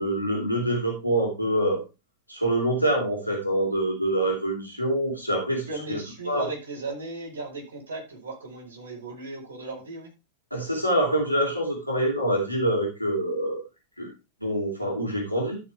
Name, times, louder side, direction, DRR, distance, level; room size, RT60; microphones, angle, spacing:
voice 1, 0.0-1.8 2.3-6.0 6.3-6.4 10.5-13.6 14.0-14.1 14.4-15.6, right 1 dB, 90° right, 0 dB, 3.5 m, -25 dB
voice 2, 5.7-10.1, right 3 dB, 65° right, 0 dB, 4.4 m, -36 dB
13.0 x 6.8 x 3.5 m, 0.27 s
figure-of-eight pair, 90°, 0 cm